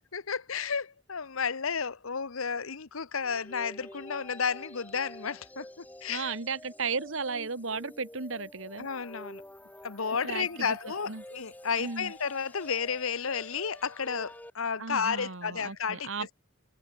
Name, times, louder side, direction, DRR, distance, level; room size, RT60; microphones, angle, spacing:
voice 1, 0.1-6.3 8.8-9.4 9.8-16.1, left 6 dB, 80° left, 1.1 m, -32 dB
sound 1, 3.2-14.5, left 1 dB, 10° left, 1.9 m, -49 dB
voice 2, 6.1-8.9 10.2-10.8 11.0-11.2 11.8-12.1 14.8-16.3, right 4 dB, 70° right, 1.8 m, -35 dB
head